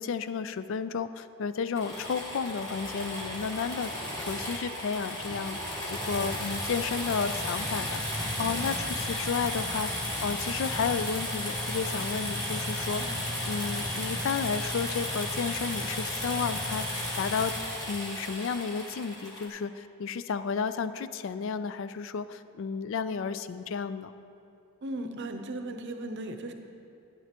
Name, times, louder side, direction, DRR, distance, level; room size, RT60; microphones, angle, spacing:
voice 1, 0.0-5.6 5.9-13.0 13.5-17.5 17.9-24.1, left 5 dB, 60° left, 12 dB, 0.3 m, -32 dB
sound 1, 1.7-19.5, left 1 dB, 15° left, 1.6 m, -34 dB
voice 2, 24.8-26.5, right 1 dB, 50° right, 6 dB, 0.6 m, -37 dB
11.0 x 10.5 x 2.9 m, 2.6 s
head